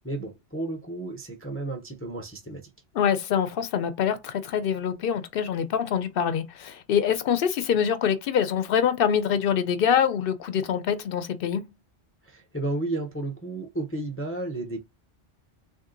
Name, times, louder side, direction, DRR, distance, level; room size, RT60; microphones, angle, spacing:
voice 1, 0.0-2.6 12.2-14.8, right 2 dB, 15° left, 0.5 m, -32 dB
voice 2, 3.0-11.7, left 8 dB, 60° left, 0.7 m, -25 dB
3.5 x 2.6 x 3.8 m
omnidirectional pair, 1.1 m